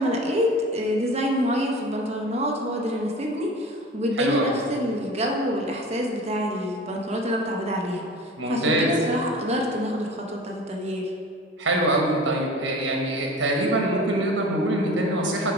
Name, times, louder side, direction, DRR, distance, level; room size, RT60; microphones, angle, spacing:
voice 1, 0.0-11.1, equal, 35° right, 0 dB, 0.8 m, -26 dB
voice 2, 4.2-4.5 8.4-8.9 11.6-15.5, right 1 dB, 85° right, 0 dB, 1.3 m, -24 dB
6.4 x 4.9 x 5.3 m, 2.4 s
head